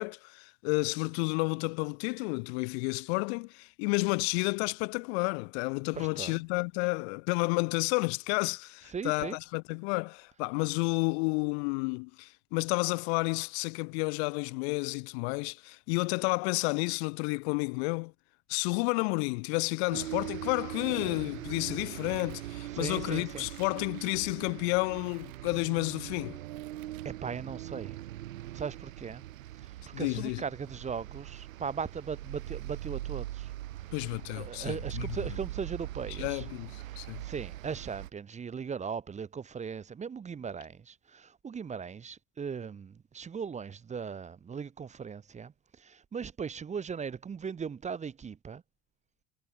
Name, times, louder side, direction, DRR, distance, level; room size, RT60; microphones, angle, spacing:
voice 1, 0.0-18.1 18.5-26.4 29.9-30.4 33.9-35.1 36.2-37.2, left 34 dB, 55° left, 0.5 m, -31 dB
voice 2, 5.9-6.4 8.9-9.4 22.7-23.5 27.0-28.0 28.5-29.2 30.0-33.5 34.3-36.4 37.2-48.6, right 6 dB, 15° right, 0.8 m, -38 dB
sound 1, 19.9-38.1, right 14 dB, 75° right, 2.3 m, -41 dB
Scissors, 21.8-22.9 23.2-24.3 24.8-25.7 26.1-27.1 27.5-27.6, right 26 dB, 55° right, 4.7 m, -59 dB
hypercardioid pair, 85°, 40 cm